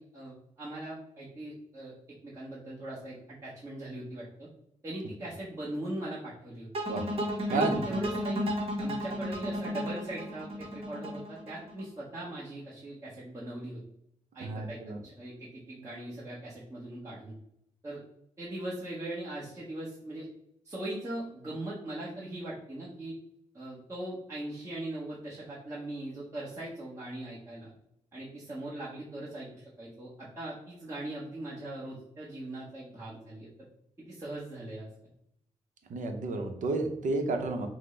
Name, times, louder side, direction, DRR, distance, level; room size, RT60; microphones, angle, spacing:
voice 1, 0.0-1.9 2.2-4.5 4.8-6.7 7.5-8.5 8.8-13.8 14.3-17.3 17.8-18.0 18.4-20.3 20.6-23.1 23.5-27.7 28.1-33.5 34.1-34.9, right 1 dB, 25° right, -7 dB, 1.1 m, -40 dB
sound 1, 6.7-11.8, equal, 50° right, 1.0 m, -33 dB
voice 2, 7.5-8.0 14.4-15.0 35.9-37.7, right 3 dB, 85° right, 5 dB, 0.7 m, -31 dB
6.0 x 2.1 x 3.2 m, 0.77 s
wide cardioid pair, 125°, 13 cm